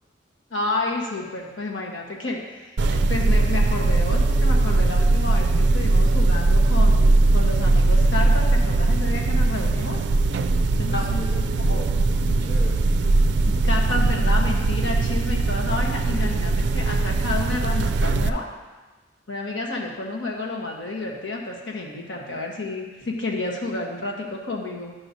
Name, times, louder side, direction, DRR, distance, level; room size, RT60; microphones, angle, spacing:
voice 1, 0.5-10.0 10.8-11.1 11.7-11.8 13.5-18.5 19.3-24.9, left 2 dB, 80° left, -1 dB, 1.2 m, -30 dB
sound 1, 2.8-18.3, right 2 dB, 65° right, 0.4 m, -20 dB
voice 2, 10.8-12.8 16.6-16.9, left 2 dB, 50° left, -4 dB, 1.6 m, -37 dB
11.5 x 5.7 x 2.7 m, 1.2 s
head